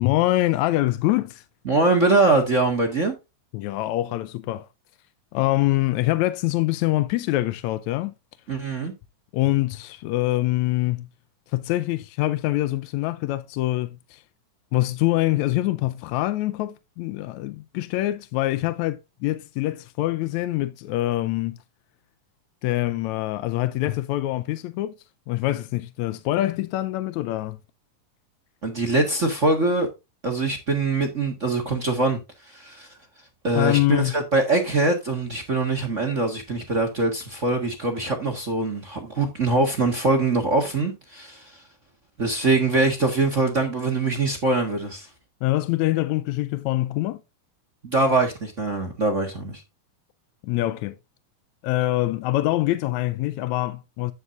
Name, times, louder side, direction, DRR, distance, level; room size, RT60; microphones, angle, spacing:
voice 1, 0.0-1.4 3.5-4.7 5.3-8.1 9.3-11.1 11.5-14.2 14.7-21.6 22.6-24.9 25.3-27.6 33.5-34.1 45.4-47.2 50.4-51.0 51.6-54.1, left 16 dB, 80° left, 1.7 m, -24 dB
voice 2, 1.6-3.1 8.5-8.9 28.6-29.9 30.2-32.9 33.4-41.6 42.2-45.1 47.8-49.6, right 3 dB, 45° right, 0.9 m, -23 dB
9.9 x 9.2 x 2.5 m
omnidirectional pair, 3.8 m